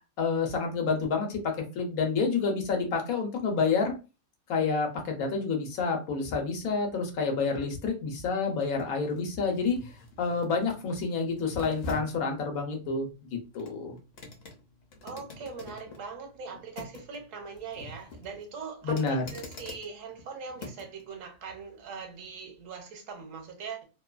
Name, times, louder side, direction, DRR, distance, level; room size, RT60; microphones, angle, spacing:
voice 1, 0.2-3.9 4.5-14.0 18.8-19.2, left 4 dB, 85° left, 3 dB, 1.2 m, -29 dB
sound 1, 6.4-21.0 21.5-21.6, left 2 dB, 60° left, 0.7 m, -47 dB
voice 2, 15.0-23.8, right 5 dB, 70° right, 4 dB, 1.0 m, -41 dB
2.7 x 2.2 x 2.3 m, 0.31 s
omnidirectional pair, 1.4 m